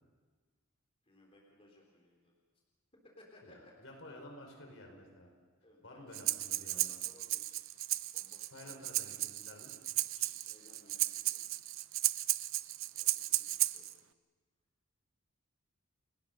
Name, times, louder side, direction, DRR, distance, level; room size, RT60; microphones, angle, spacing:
voice 1, 1.0-2.3 3.0-3.7 5.6-7.6 8.1-8.8 10.2-11.6 12.9-14.0, left 1 dB, 25° left, -2 dB, 3.7 m, -62 dB
voice 2, 3.4-5.3 5.8-6.9 8.5-9.7 10.1-10.3, left 1 dB, 65° left, 2 dB, 5.1 m, -52 dB
Breathing, 6.1-13.9, right 16 dB, 65° right, 0.6 m, -35 dB
30.0 x 20.0 x 5.4 m, 1.4 s
head